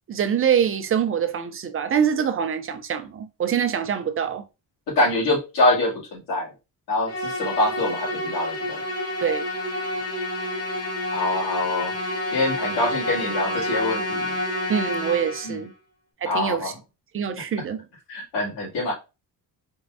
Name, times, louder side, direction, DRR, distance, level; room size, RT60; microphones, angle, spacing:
voice 1, 0.1-4.4 9.2-9.4 14.7-15.7 16.2-16.7 17.1-17.8, right 8 dB, 35° right, 0.4 m, -24 dB
voice 2, 5.0-6.5 6.9-8.8 11.1-11.9 12.3-14.3 15.4-15.6 16.3-16.7 18.1-18.9, left 2 dB, 85° left, 2.5 m, -24 dB
Musical instrument, 7.1-15.6, left 1 dB, 40° left, 1.1 m, -29 dB
4.5 x 3.1 x 2.6 m
cardioid pair, 155°, 40 cm